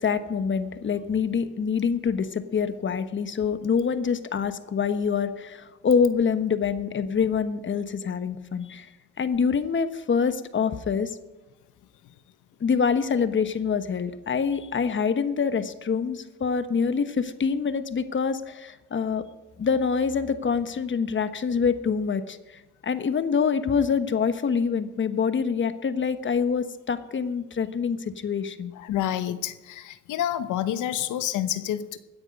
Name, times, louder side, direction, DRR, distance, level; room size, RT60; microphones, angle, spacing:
voice 1, 0.0-8.9 9.2-11.2 12.6-19.3 19.6-28.7, left 6 dB, 40° left, 11 dB, 1.1 m, -26 dB
voice 2, 28.7-32.0, left 11 dB, 85° left, 12 dB, 1.0 m, -28 dB
16.5 x 9.8 x 5.3 m, 1.1 s
cardioid pair, 90°, 30 cm